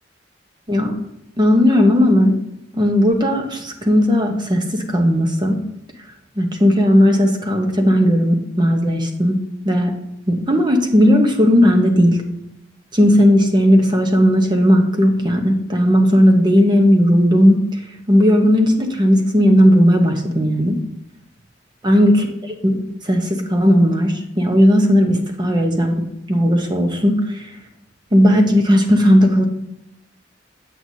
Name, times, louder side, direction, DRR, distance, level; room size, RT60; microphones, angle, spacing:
voice 1, 1.4-2.3 2.7-5.6 6.4-9.4 9.6-9.9 10.3-12.2 12.9-17.6 18.1-20.8 21.8-22.1 22.6-26.0 26.3-27.2 28.1-29.5, equal, 25° right, 4 dB, 0.9 m, -15 dB
8.0 x 7.7 x 2.7 m, 0.82 s
head